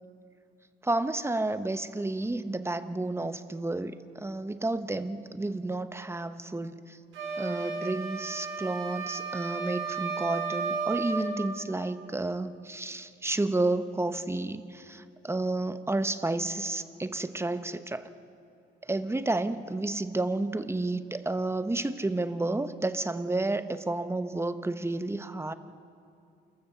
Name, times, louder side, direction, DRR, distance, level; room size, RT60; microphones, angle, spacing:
voice 1, 0.8-7.0 7.4-18.1 18.9-25.5, right 2 dB, 15° right, 11 dB, 1.0 m, -31 dB
sound 1, 7.1-11.4, right 5 dB, 80° right, 4.8 m, -33 dB
28.5 x 14.5 x 6.8 m, 2.5 s
cardioid pair, 90°, 20 cm